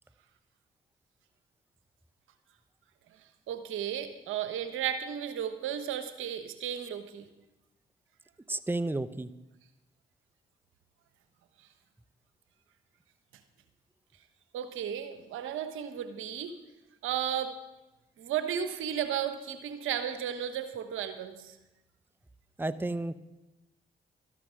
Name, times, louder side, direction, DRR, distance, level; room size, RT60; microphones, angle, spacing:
voice 1, 3.5-7.3 14.5-16.5 17.0-17.5 18.2-21.5, right 9 dB, 80° right, 10 dB, 1.1 m, -34 dB
voice 2, 8.5-9.3 22.6-23.2, right 2 dB, 10° right, 14 dB, 0.8 m, -32 dB
12.5 x 11.0 x 6.3 m, 0.98 s
hypercardioid pair, 40°, 20 cm